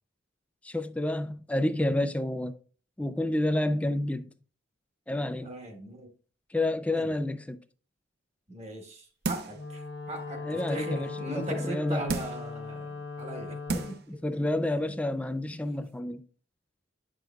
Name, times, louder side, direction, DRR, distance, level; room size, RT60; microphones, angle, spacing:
voice 1, 0.6-2.5 3.0-4.3 5.1-5.5 6.5-7.6 10.4-12.1 13.7-16.2, left 1 dB, 5° left, 0.3 m, -29 dB
voice 2, 5.4-6.1 6.9-7.1 8.5-14.0, right 1 dB, 35° right, 1.2 m, -39 dB
sound 1, 9.2-9.7 10.2-10.3 12.1-12.5 13.2-13.3 13.7-14.1 14.5-14.6, right 3 dB, 55° right, 0.6 m, -33 dB
Wind instrument woodwind instrument, 9.5-14.0, left 4 dB, 65° left, 0.9 m, -39 dB
9.0 x 6.2 x 2.3 m
head